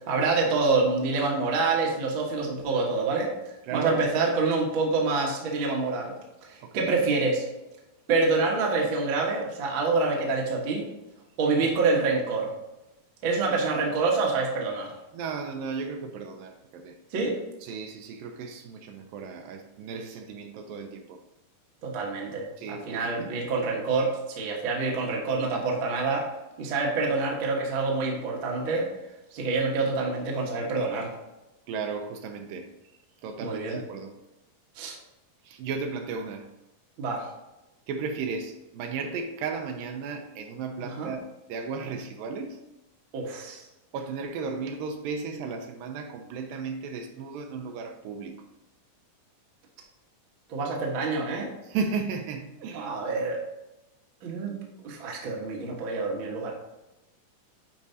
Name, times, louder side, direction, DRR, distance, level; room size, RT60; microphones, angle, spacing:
voice 1, 0.1-3.3 3.7-6.1 6.4-7.4 8.1-10.9 11.4-12.5 13.2-14.9 17.1-17.4 21.8-26.3 26.6-28.9 29.3-31.1 33.4-33.8 34.7-35.0 37.0-37.3 40.8-41.1 43.1-43.6 50.5-51.5 52.7-53.4 54.2-54.5 54.8-56.5, right 3 dB, 55° right, -2 dB, 1.4 m, -26 dB
voice 2, 3.7-4.1 6.6-6.9 11.6-11.7 15.1-17.0 17.6-21.2 22.6-23.4 31.7-32.7 33.2-34.1 35.4-36.5 37.9-42.6 43.9-48.5 51.6-52.9, right 5 dB, 80° right, 5 dB, 2.2 m, -35 dB
10.5 x 4.7 x 2.7 m, 0.99 s
omnidirectional pair, 4.1 m